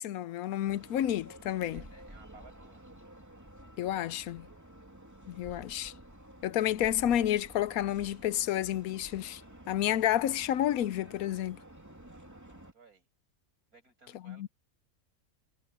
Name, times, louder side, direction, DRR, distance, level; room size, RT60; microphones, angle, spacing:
voice 1, 0.0-1.8 3.8-4.5 5.3-5.9 6.4-9.4 9.7-11.6 14.3-14.5, left 12 dB, 80° left, 1.1 m, -30 dB
sound 1, 0.7-12.7, right 1 dB, 10° right, 2.8 m, -51 dB
voice 2, 1.7-2.8 12.5-13.1 13.7-14.5, right 4 dB, 85° right, 7.8 m, -58 dB
omnidirectional pair, 1.5 m